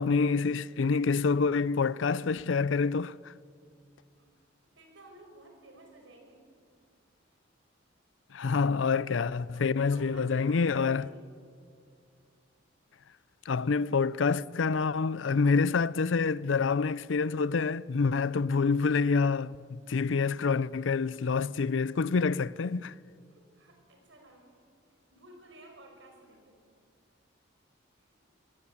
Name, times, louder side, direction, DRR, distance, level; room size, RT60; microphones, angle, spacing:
voice 1, 0.0-3.3 8.3-11.1 13.5-22.9, left 4 dB, 80° left, 0.5 m, -27 dB
voice 2, 4.8-6.4 7.3-7.4 8.4-8.7 9.5-11.3 23.3-24.6 24.9-26.8 27.9-28.2, right 1 dB, 75° right, 5.2 m, -54 dB
23.0 x 18.0 x 8.6 m
head